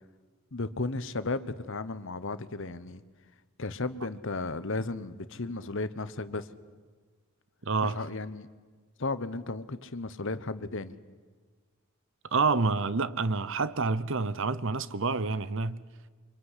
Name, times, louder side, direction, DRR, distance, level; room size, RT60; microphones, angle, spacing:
voice 1, 0.5-3.0 3.6-6.5 7.8-8.5 9.0-10.9, left 3 dB, 60° left, 1.1 m, -34 dB
voice 2, 7.6-8.0 12.3-15.8, right 4 dB, 60° right, 0.9 m, -28 dB
25.0 x 24.0 x 9.9 m
head